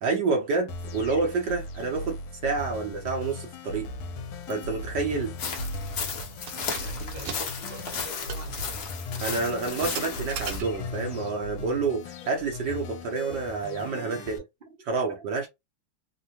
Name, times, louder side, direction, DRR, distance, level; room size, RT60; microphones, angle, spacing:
voice 1, 0.0-3.9 4.5-5.3 9.2-14.4 14.9-15.5, right 4 dB, 65° right, 1.2 m, -28 dB
sound 1, 0.7-14.4, left 3 dB, 80° left, 1.5 m, -38 dB
Keys jangling, 4.5-4.7 5.0-5.1 5.6-5.9 6.3-11.1, right 5 dB, 85° right, 1.4 m, -40 dB
sound 2, 5.4-10.6, left 5 dB, 60° left, 1.0 m, -35 dB
voice 2, 6.7-8.9 14.1-14.4 14.7-15.4, right 3 dB, 45° right, 0.7 m, -46 dB
3.6 x 2.1 x 2.8 m
omnidirectional pair, 2.3 m